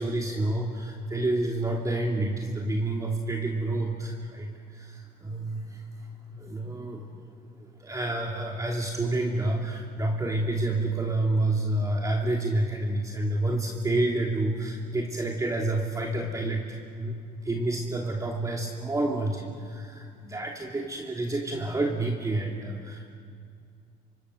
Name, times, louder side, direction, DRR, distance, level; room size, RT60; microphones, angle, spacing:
voice 1, 0.0-6.1 6.3-7.0 7.6-17.2 17.4-23.0, right 2 dB, 20° right, -1 dB, 2.9 m, -29 dB
29.5 x 25.5 x 6.7 m, 2.2 s
cardioid pair, 110°, 17 cm